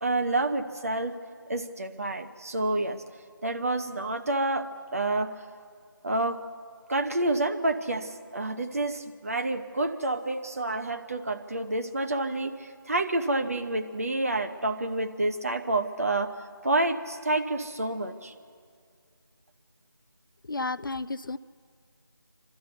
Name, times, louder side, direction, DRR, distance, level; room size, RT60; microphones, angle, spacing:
voice 1, 0.0-1.2 1.5-3.0 3.4-5.3 6.0-6.4 6.9-16.3 16.6-18.3, right 2 dB, 40° right, 6 dB, 0.9 m, -28 dB
voice 2, 20.5-21.4, left 3 dB, 60° left, 16 dB, 0.5 m, -32 dB
27.0 x 12.5 x 8.1 m, 2.2 s
figure-of-eight pair, 165°, 12 cm